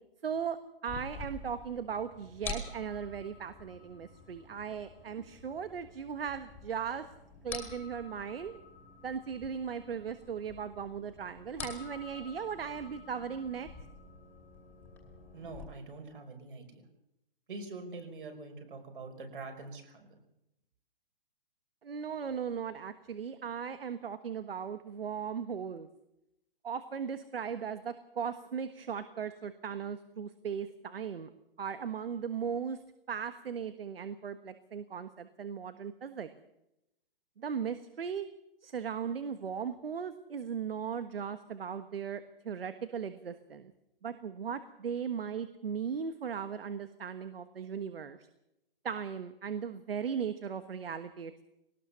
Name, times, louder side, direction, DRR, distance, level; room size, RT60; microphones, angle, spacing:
voice 1, 0.2-0.6 0.8-7.0 7.4-8.6 9.0-13.7 21.8-25.9 26.6-31.3 31.6-32.8 33.1-36.3 37.4-38.3 38.6-43.7 44.0-48.2 48.8-51.4, right 7 dB, 75° right, 11 dB, 1.4 m, -37 dB
sound 1, 0.9-15.7, left 4 dB, 5° left, 2.4 m, -47 dB
voice 2, 15.3-16.8 17.5-20.2, right 3 dB, 60° right, 5 dB, 5.4 m, -45 dB
20.5 x 18.5 x 7.0 m, 0.86 s
hypercardioid pair, 180°, 29 cm